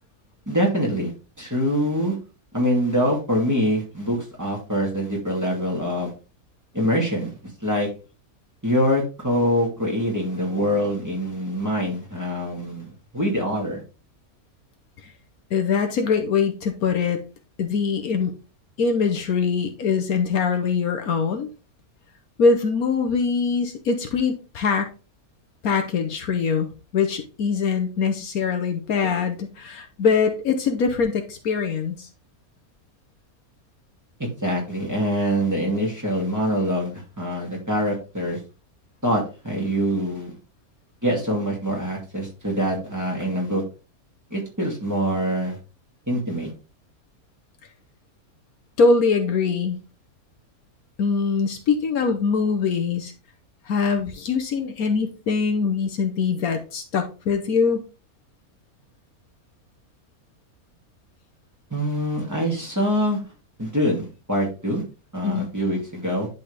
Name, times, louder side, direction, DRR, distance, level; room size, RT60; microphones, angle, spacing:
voice 1, 0.5-1.1 1.4-2.2 2.5-6.1 6.7-7.9 8.6-12.9 13.1-13.8 34.2-38.4 39.0-40.4 41.0-43.6 44.3-45.6 46.1-46.5 61.7-63.2 63.6-64.8 65.1-66.3, equal, 10° right, -2 dB, 2.6 m, -24 dB
voice 2, 15.5-17.2 17.6-18.3 18.8-21.5 22.4-24.9 25.6-32.1 48.8-49.8 51.0-53.1 53.7-57.8 65.2-65.5, left 5 dB, 80° left, 5 dB, 1.4 m, -23 dB
11.0 x 4.1 x 3.4 m, 0.32 s
omnidirectional pair, 1.5 m